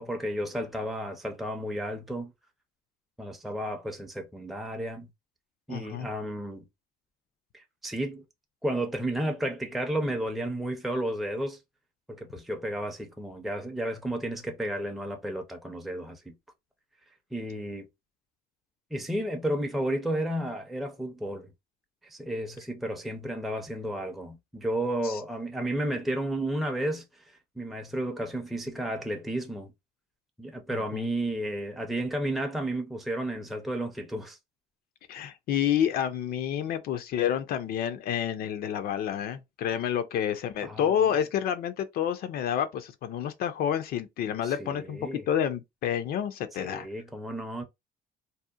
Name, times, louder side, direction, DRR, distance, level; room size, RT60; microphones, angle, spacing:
voice 1, 0.0-2.3 3.2-5.1 5.7-6.6 7.5-8.2 8.6-11.6 12.1-16.3 17.3-17.9 18.9-21.5 22.0-29.7 30.4-34.4 40.6-40.9 44.4-45.3 46.6-47.6, right 1 dB, ahead, 0.4 m, -32 dB
voice 2, 5.7-6.1 25.0-25.2 30.7-31.1 35.1-46.9, left 9 dB, 65° left, 0.4 m, -29 dB
2.7 x 2.1 x 2.3 m
cardioid pair, 110°, 17 cm